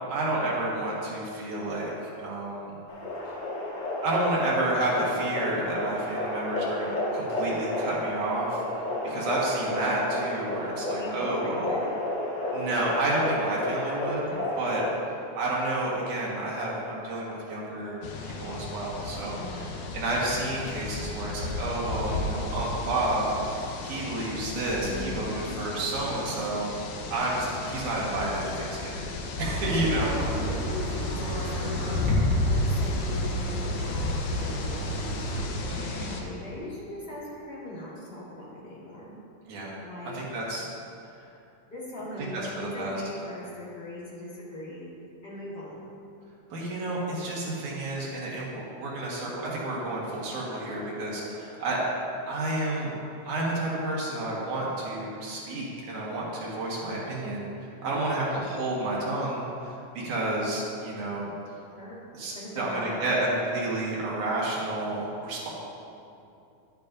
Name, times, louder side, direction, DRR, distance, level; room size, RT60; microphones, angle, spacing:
voice 1, 0.1-1.9 2.2-2.7 3.3-3.4 4.0-8.6 9.0-11.7 12.5-14.8 15.4-19.4 19.9-26.7 27.1-29.1 29.4-30.1 35.7-36.2 39.5-39.7 40.1-40.7 42.2-43.0 46.5-51.8 52.2-52.9 53.2-61.3 62.1-65.5, right 2 dB, 80° right, -5 dB, 3.1 m, -30 dB
sound 1, 2.9-15.0, left 1 dB, 50° left, 1.4 m, -32 dB
voice 2, 11.0-11.9 14.3-14.7 19.3-19.7 24.8-25.6 29.9-32.1 32.5-34.8 35.5-39.2 39.8-40.2 41.7-44.9 45.2-45.9 50.5-50.7 51.2-51.4 57.8-58.5 61.8-62.0 62.3-63.4, left 1 dB, 25° left, -8 dB, 1.6 m, -40 dB
sound 2, 18.0-36.2, left 3 dB, 75° left, 1.9 m, -33 dB
Livestock farm animals working animals, 29.4-35.4, right 2 dB, 55° right, 1.8 m, -32 dB
10.5 x 8.8 x 2.6 m, 2.6 s
omnidirectional pair, 3.5 m